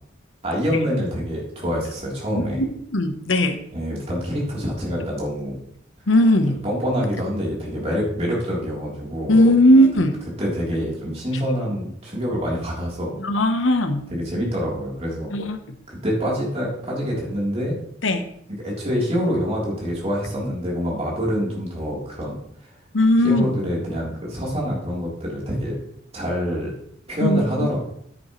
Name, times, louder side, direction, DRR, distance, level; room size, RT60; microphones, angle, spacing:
voice 1, 0.4-2.6 3.7-5.6 6.6-9.4 10.4-13.2 14.1-15.3 15.9-17.8 18.6-22.4 23.2-25.8 26.1-26.7 27.1-27.8, equal, 35° right, -4 dB, 3.5 m, -26 dB
voice 2, 2.4-3.6 6.1-6.6 9.3-10.2 13.2-14.0 15.3-15.6 18.0-18.2 22.9-23.5 27.2-27.7, left 1 dB, 85° left, 8 dB, 1.0 m, -18 dB
10.0 x 9.2 x 3.2 m, 0.70 s
head